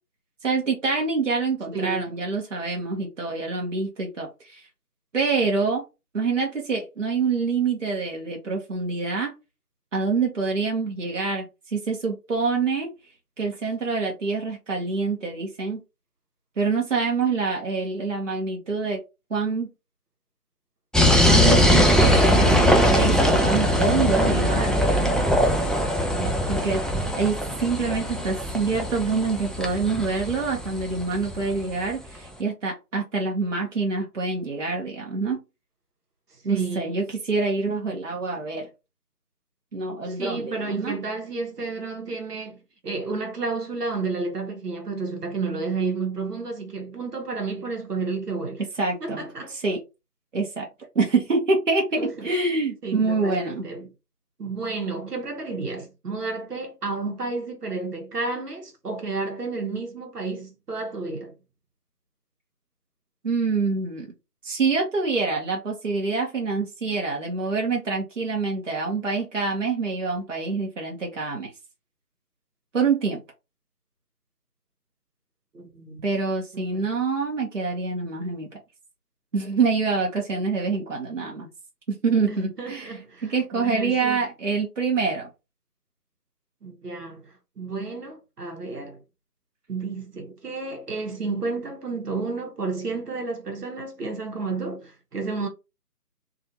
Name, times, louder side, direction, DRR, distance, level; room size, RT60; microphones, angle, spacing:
voice 1, 0.4-4.6 5.1-5.8 6.1-9.3 9.9-12.9 13.4-15.8 16.6-19.0 19.3-19.7 21.2-25.2 26.5-26.8 27.2-35.4 36.4-38.7 39.7-41.0 48.8-49.2 49.5-49.8 50.3-50.7 50.9-53.6 63.2-64.1 64.4-71.5 72.7-73.2 76.0-78.5 79.3-81.5 81.9-82.9 83.2-85.3, right 4 dB, 50° right, 0.9 m, -26 dB
voice 2, 1.7-2.1 26.2-26.7 36.4-36.9 40.1-48.6 49.0-49.5 52.0-52.3 52.8-53.9 54.4-61.3 75.5-76.0 76.5-76.9 82.3-84.2 86.6-89.0 89.7-95.5, right 3 dB, 75° right, 1.0 m, -31 dB
sound 1, 20.9-31.6, equal, ahead, 0.3 m, -21 dB
2.7 x 2.5 x 2.7 m
figure-of-eight pair, 170°, 47 cm